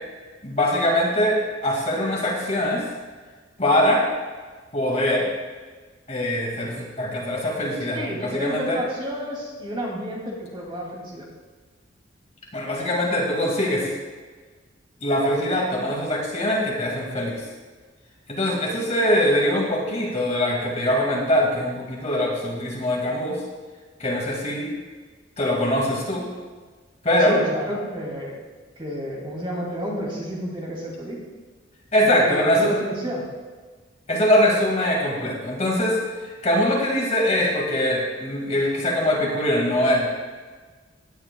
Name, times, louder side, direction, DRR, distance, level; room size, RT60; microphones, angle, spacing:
voice 1, 0.4-2.8 3.6-4.0 4.7-5.3 6.1-8.8 12.5-13.9 15.0-17.4 18.3-23.4 24.0-24.7 25.4-26.3 27.0-27.4 31.9-32.7 34.1-40.1, left 1 dB, 35° left, -2 dB, 2.1 m, -22 dB
voice 2, 7.9-11.2 27.2-28.3 28.8-31.2 32.0-33.3, equal, 30° right, -3 dB, 2.5 m, -30 dB
16.5 x 10.0 x 2.3 m, 1.4 s
head